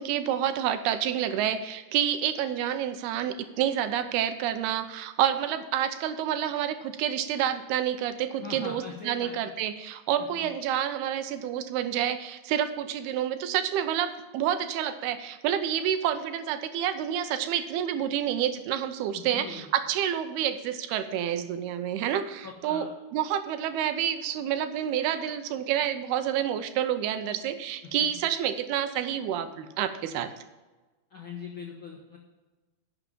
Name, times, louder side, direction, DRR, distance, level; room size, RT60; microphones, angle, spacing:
voice 1, 0.0-30.3, right 10 dB, 85° right, 9 dB, 2.7 m, -29 dB
voice 2, 8.4-9.5 10.3-10.5 19.1-19.7 22.4-22.9 31.1-32.2, left 5 dB, 70° left, -1 dB, 1.2 m, -41 dB
11.0 x 6.9 x 5.4 m, 1.2 s
omnidirectional pair, 4.6 m